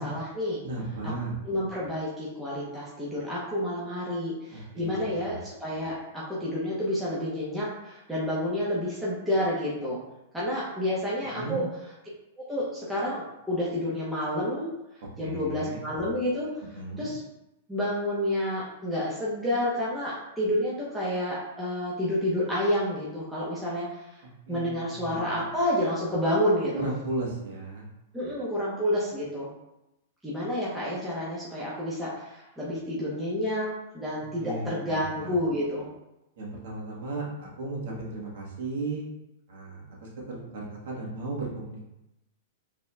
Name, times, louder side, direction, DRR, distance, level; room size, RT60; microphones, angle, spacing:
voice 1, 0.0-0.6 1.4-10.0 10.3-11.6 12.4-14.7 15.2-16.5 17.0-17.2 17.7-23.9 24.5-26.9 28.1-29.5 30.2-33.7 33.9-35.9, left 1 dB, 5° right, -8 dB, 1.0 m, -29 dB
voice 2, 0.6-1.3 4.5-5.4 11.3-11.6 15.2-15.8 16.7-17.1 24.5-25.4 26.7-27.9 34.4-35.3 36.4-39.1 39.5-41.9, right 2 dB, 65° right, -3 dB, 1.5 m, -35 dB
5.3 x 3.4 x 2.4 m, 0.93 s
hypercardioid pair, 125°, 0 cm